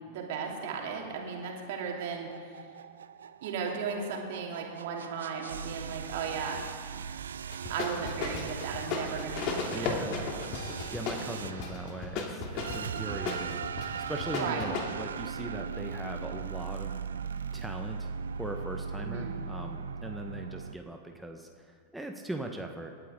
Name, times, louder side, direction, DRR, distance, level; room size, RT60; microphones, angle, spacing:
voice 1, 0.0-2.6 3.4-6.6 7.7-10.1 14.3-14.7 19.0-19.4, right 5 dB, 50° right, 0 dB, 3.1 m, -36 dB
sound 1, 1.9-20.8, right 6 dB, 65° right, 0.5 m, -39 dB
sound 2, 7.5-14.8, left 5 dB, 40° left, 2.8 m, -35 dB
voice 2, 9.7-10.3 10.7-16.9 17.5-18.1 18.4-23.0, right 1 dB, 5° right, 2 dB, 1.3 m, -40 dB
28.0 x 12.5 x 3.8 m, 2.2 s
figure-of-eight pair, 90°, 0 cm